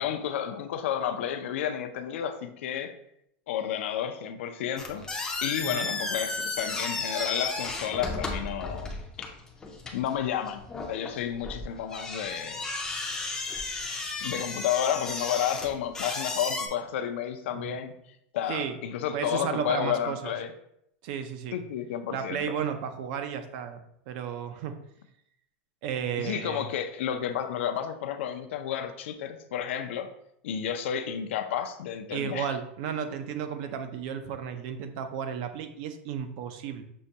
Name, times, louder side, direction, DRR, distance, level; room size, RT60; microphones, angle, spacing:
voice 1, 0.0-2.9 3.5-5.0 5.4-8.9 9.9-12.6 14.2-17.9 18.3-20.5 21.5-22.5 26.2-30.1 30.4-32.5, left 9 dB, 75° left, 7 dB, 0.4 m, -31 dB
sound 1, 4.8-16.7, left 3 dB, 10° left, 0.4 m, -34 dB
voice 2, 19.1-20.3 21.0-21.6 22.1-23.8 24.1-24.8 25.8-26.7 32.1-36.8, right 8 dB, 45° right, 8 dB, 0.4 m, -33 dB
6.2 x 2.2 x 2.7 m, 0.74 s
supercardioid pair, 165°, 7 cm